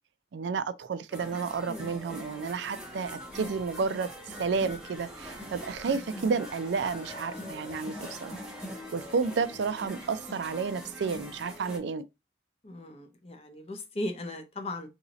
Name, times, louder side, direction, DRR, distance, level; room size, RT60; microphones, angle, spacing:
voice 1, 0.3-4.1 4.4-8.4 8.9-12.0, right 5 dB, 80° right, 0.4 m, -31 dB
sound 1, 1.1-11.8, equal, 5° right, 0.8 m, -42 dB
voice 2, 12.6-14.9, left 1 dB, 35° left, 0.6 m, -37 dB
2.9 x 2.7 x 3.9 m
head